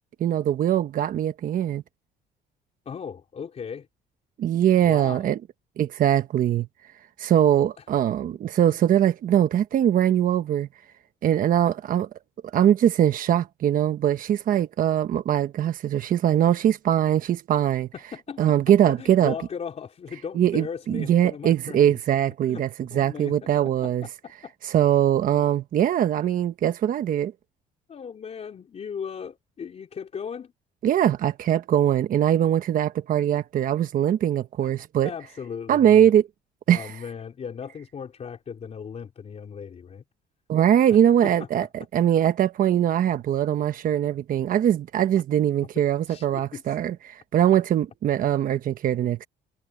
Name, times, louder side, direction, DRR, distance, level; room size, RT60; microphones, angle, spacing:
voice 1, 0.2-1.8 4.4-5.4 5.8-6.7 7.2-10.7 11.2-12.1 12.5-17.9 18.4-19.3 20.4-24.0 24.6-27.3 30.8-35.1 35.7-36.3 36.7-36.9 40.5-41.7 41.9-49.3, right 10 dB, 55° right, 1.2 m, -22 dB
voice 2, 2.9-3.9 4.8-5.3 7.8-7.9 8.7-8.8 17.9-18.6 18.9-21.9 22.4-22.6 22.9-23.5 23.8-24.5 27.9-30.5 34.6-34.7 35.0-36.1 36.7-40.0 41.2-41.7 46.1-46.7, left 7 dB, 40° left, 3.6 m, -37 dB
cardioid pair, 110°, 17 cm